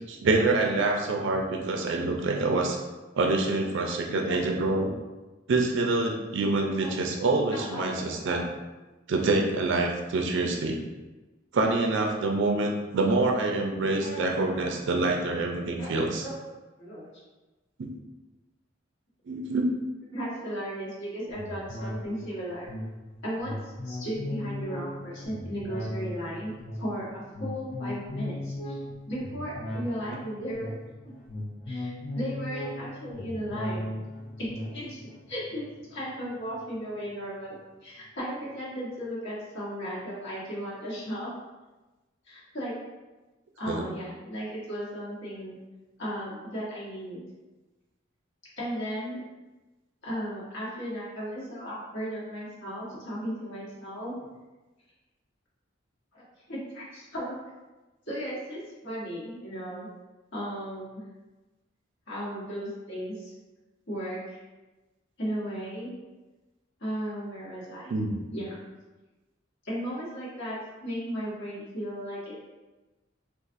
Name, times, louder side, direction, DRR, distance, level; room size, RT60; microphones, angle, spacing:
voice 1, 0.1-2.8 3.2-4.9 5.5-8.4 9.1-10.8 11.5-16.3 17.8-17.9 19.3-19.7 43.7-43.8 67.9-68.1, right 2 dB, 65° right, 2 dB, 0.4 m, -26 dB
voice 2, 7.5-8.1 14.0-14.3 14.6-14.7 15.8-16.3 16.8-17.1 20.1-22.7 23.2-26.5 26.8-28.8 29.0-30.7 31.0-31.1 31.7-33.9 34.4-35.0 35.3-37.6 37.8-41.3 42.3-42.7 43.6-45.6 46.0-47.2 48.6-49.2 50.0-54.1 56.1-56.2 56.5-57.4 58.1-59.9 60.3-61.0 62.1-63.3 63.9-64.4 65.2-65.9 66.8-68.0 68.3-68.6 69.6-72.4, equal, 65° left, -7 dB, 1.2 m, -35 dB
sound 1, 21.3-37.1 37.5-37.6, left 1 dB, 30° left, 0.6 m, -38 dB
3.9 x 2.4 x 2.5 m, 1.1 s
head